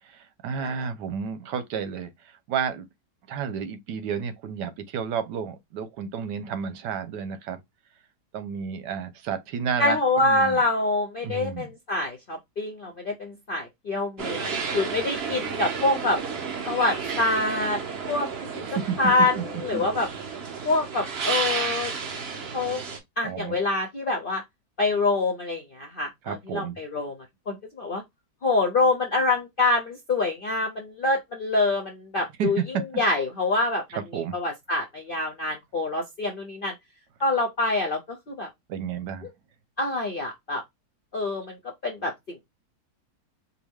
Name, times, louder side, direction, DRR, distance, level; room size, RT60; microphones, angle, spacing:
voice 1, 0.1-2.1 2.5-2.8 3.3-7.6 8.3-10.6 11.2-11.7 18.5-19.0 19.4-19.5 19.7-19.8 23.2-23.5 26.2-26.7 32.4-32.6 34.1-34.3 38.7-39.3, right 7 dB, 85° right, 1.3 m, -31 dB
voice 2, 9.8-16.2 16.7-17.8 18.1-18.3 19.0-19.4 19.6-20.1 20.6-21.9 22.5-22.8 23.2-24.4 24.8-27.1 27.5-28.0 28.4-32.6 33.0-33.8 34.1-36.7 37.2-38.0 38.3-38.5 39.8-40.6 41.1-41.6 41.8-42.4, left 2 dB, 60° left, 0.5 m, -25 dB
sound 1, 14.2-23.0, right 5 dB, 50° right, 0.8 m, -32 dB
4.7 x 2.2 x 3.4 m
omnidirectional pair, 1.8 m